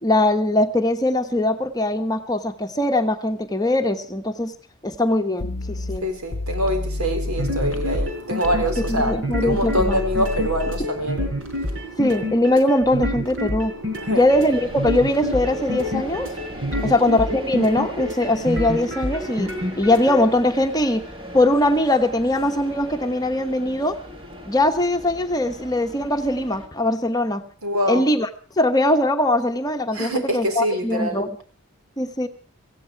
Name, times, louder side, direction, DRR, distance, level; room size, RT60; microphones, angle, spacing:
voice 1, 0.0-4.5 4.8-6.0 8.9-10.0 12.0-13.7 14.1-16.3 16.8-21.0 21.3-24.0 24.5-27.5 27.9-28.3 28.6-31.3 32.0-32.3, left 1 dB, 15° left, 7 dB, 1.1 m, -21 dB
sound 1, 5.4-8.1 8.4-10.9, left 2 dB, 65° left, 0.7 m, -29 dB
voice 2, 6.0-11.3 14.0-14.3 16.7-17.0 27.6-28.1 29.9-31.2, equal, 85° right, 6 dB, 4.2 m, -25 dB
sound 2, 7.3-20.2, left 1 dB, 60° right, 4.3 m, -28 dB
sound 3, 14.3-26.7, equal, 25° right, 1.9 m, -39 dB
17.5 x 15.5 x 4.6 m, 0.39 s
head